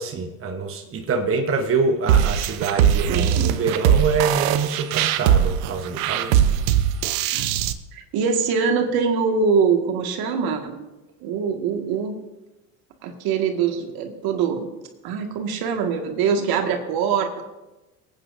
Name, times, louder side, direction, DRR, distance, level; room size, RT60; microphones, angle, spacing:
voice 1, 0.0-6.4, right 4 dB, 30° right, 3 dB, 1.2 m, -25 dB
sound 1, 2.1-7.7, right 10 dB, 75° right, 0.8 m, -20 dB
voice 2, 3.1-3.5 7.3-7.5 7.9-10.8 11.2-12.2 13.0-14.7 15.0-17.4, right 6 dB, 60° right, 4 dB, 1.9 m, -23 dB
23.5 x 9.0 x 2.7 m, 1.0 s
hypercardioid pair, 80°, 41 cm